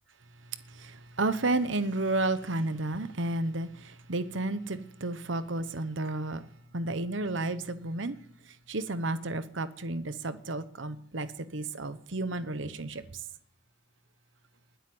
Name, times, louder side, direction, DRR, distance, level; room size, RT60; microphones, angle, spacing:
voice 1, 0.8-6.4 6.7-8.2 8.7-13.0, right 2 dB, 70° right, 1.1 m, -32 dB
20.5 x 8.3 x 7.9 m
head